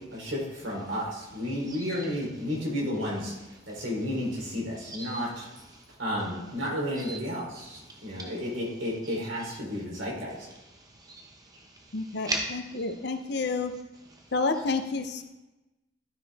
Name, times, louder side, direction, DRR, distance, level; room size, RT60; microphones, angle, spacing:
voice 1, 0.1-3.3 3.7-5.5 6.0-10.5, left 1 dB, 85° right, -4 dB, 3.4 m, -32 dB
voice 2, 1.7-2.1 3.7-3.8 4.8-5.8 7.0-7.2 7.7-8.3 9.0-9.1 10.7-12.4, right 2 dB, 20° right, 0 dB, 1.2 m, -39 dB
voice 3, 11.9-13.7 14.3-15.2, left 3 dB, 60° left, 7 dB, 0.7 m, -30 dB
12.5 x 5.4 x 3.5 m, 1.0 s
head